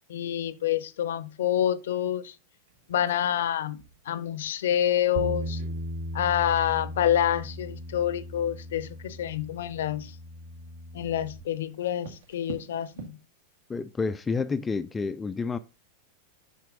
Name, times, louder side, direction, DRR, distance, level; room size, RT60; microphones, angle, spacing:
voice 1, 0.1-2.3 2.9-5.6 6.1-10.1 10.9-13.2, left 10 dB, 60° left, 0.6 m, -27 dB
sound 1, 2.7-13.1, right 5 dB, 60° right, 1.7 m, -51 dB
Bass guitar, 5.2-11.4, equal, 45° right, 1.7 m, -37 dB
voice 2, 13.7-15.6, left 4 dB, 15° left, 0.3 m, -29 dB
7.4 x 5.7 x 3.7 m
figure-of-eight pair, 90°, 0 cm